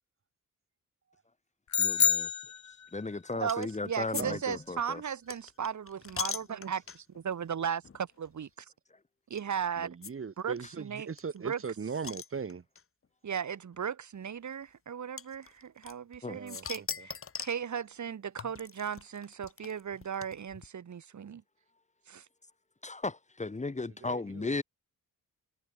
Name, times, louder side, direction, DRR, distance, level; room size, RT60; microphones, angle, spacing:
sound 1, 1.7-3.2, left 8 dB, 55° left, 3.3 m, -28 dB
voice 1, 1.8-2.3 2.9-5.0 16.2-16.4 22.8-24.6, left 3 dB, 20° left, 3.7 m, -36 dB
voice 2, 3.3-8.6 9.3-10.0 10.4-11.6 13.2-21.4 22.1-22.2, right 7 dB, 60° right, 6.6 m, -36 dB
sound 2, 3.5-3.8 4.1-4.3 4.5-7.2 7.8-8.0 8.2-8.3 9.4-9.5 10.0-10.1 10.4-10.5 10.7-10.8 11.2-12.8 13.7-13.8 15.2-16.2 16.5-17.6 18.4-20.7, left 6 dB, 40° left, 2.6 m, -40 dB
voice 3, 9.8-12.6 16.3-16.6 17.0-17.1 23.8-24.6, right 5 dB, 40° right, 5.1 m, -39 dB
wide cardioid pair, 135°, 33 cm